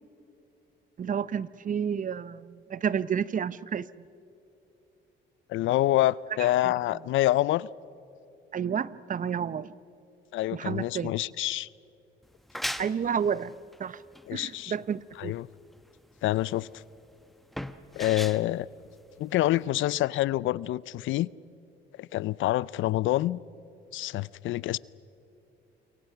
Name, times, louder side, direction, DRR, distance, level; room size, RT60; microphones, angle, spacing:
voice 1, 1.0-4.0 6.4-6.7 8.5-9.7 10.5-11.1 12.8-13.5 13.8-14.0 14.3-15.4, right 7 dB, 40° right, 0.6 m, -31 dB
voice 2, 5.5-7.7 10.3-11.7 14.3-14.7 15.2-15.5 16.2-16.7 17.9-18.7 19.2-21.3 22.0-23.4 23.9-24.8, left 15 dB, 80° left, 0.5 m, -27 dB
sound 1, 12.2-19.7, equal, ahead, 1.0 m, -40 dB
28.0 x 24.0 x 5.8 m
cardioid pair, 90°, 20 cm